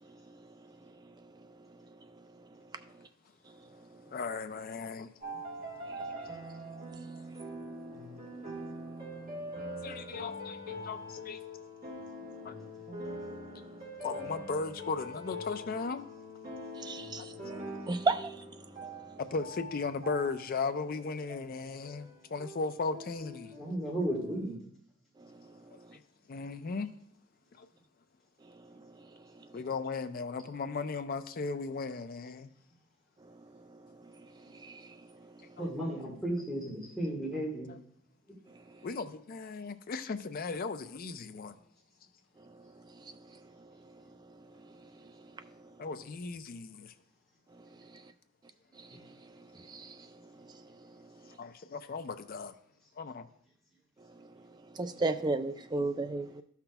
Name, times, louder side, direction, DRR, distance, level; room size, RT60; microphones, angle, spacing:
voice 1, 4.1-5.1 9.8-11.4 12.4-12.5 14.0-16.1 17.2-17.3 19.2-23.5 25.7-26.0 26.3-26.9 27.6-27.7 29.5-32.5 35.6-35.7 37.7-37.8 38.8-41.6 45.8-46.9 51.4-52.5 53.0-53.3, left 4 dB, 45° left, 0.4 m, -37 dB
sound 1, 5.2-24.4, equal, 40° right, 1.4 m, -44 dB
voice 2, 16.8-17.2 17.9-18.3 49.7-49.8 54.8-56.4, right 3 dB, 20° right, 0.3 m, -31 dB
voice 3, 23.6-24.6 35.6-37.7 48.9-49.0, right 1 dB, ahead, 1.6 m, -34 dB
12.5 x 5.8 x 2.3 m
head